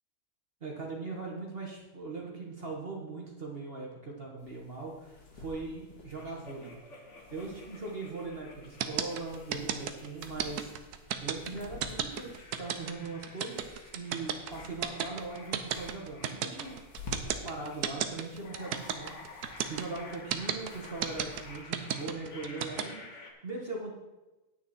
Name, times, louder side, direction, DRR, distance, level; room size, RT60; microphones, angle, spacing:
voice 1, 0.6-6.7 7.3-10.7 11.2-17.2 17.4-23.9, right 3 dB, 40° right, -1 dB, 1.7 m, -40 dB
sound 1, 4.4-21.5, left 3 dB, 80° left, 2.2 m, -52 dB
sound 2, 6.2-10.9 11.4-23.3, left 3 dB, 50° left, 1.6 m, -52 dB
sound 3, 8.8-22.8, right 9 dB, 85° right, 1.3 m, -32 dB
9.5 x 9.0 x 4.3 m, 1.1 s
omnidirectional pair, 1.6 m